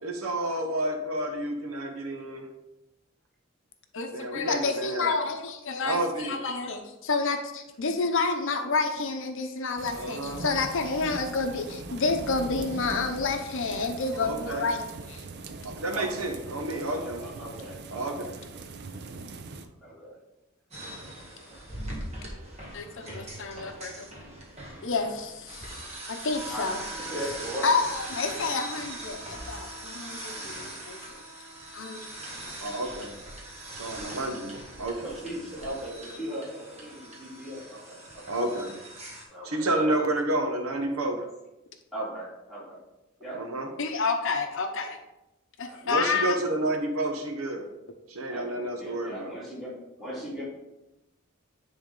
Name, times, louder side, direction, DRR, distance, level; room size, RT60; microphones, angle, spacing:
voice 1, 0.0-2.5 4.1-5.1 5.8-6.4 10.0-10.4 14.1-14.7 15.6-17.2 17.9-18.3 32.6-33.2 33.7-35.1 38.2-38.8 39.4-41.3 43.3-43.7 45.8-47.7 48.1-49.4, right 1 dB, 85° right, 5 dB, 1.0 m, -30 dB
voice 2, 3.9-14.8 15.1-15.2 22.7-24.1 24.8-25.6 26.1-26.8 27.6-31.2 31.7-32.0 43.8-45.0 45.6-46.4, left 4 dB, 65° left, 6 dB, 0.7 m, -29 dB
sound 1, 9.8-19.7, right 3 dB, 50° right, 0.5 m, -41 dB
voice 3, 15.9-16.3 16.7-18.2 19.8-20.2 26.4-26.7 27.1-27.8 33.9-34.2 35.0-38.4 39.3-39.6 41.9-42.8 43.2-43.4 45.7-45.8 48.3-50.4, equal, ahead, -8 dB, 2.6 m, -38 dB
sound 2, 20.7-39.2, right 1 dB, 30° right, 1.6 m, -41 dB
10.5 x 3.5 x 3.8 m, 0.94 s
head